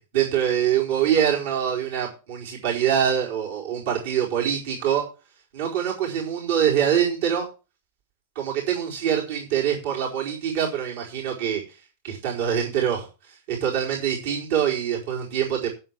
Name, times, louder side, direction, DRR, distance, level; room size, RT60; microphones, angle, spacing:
voice 1, 0.1-5.0 5.5-7.5 8.3-11.6 12.0-15.7, right 9 dB, 70° right, -3 dB, 4.4 m, -24 dB
8.0 x 7.8 x 7.4 m, 0.32 s
supercardioid pair, 135°, 0 cm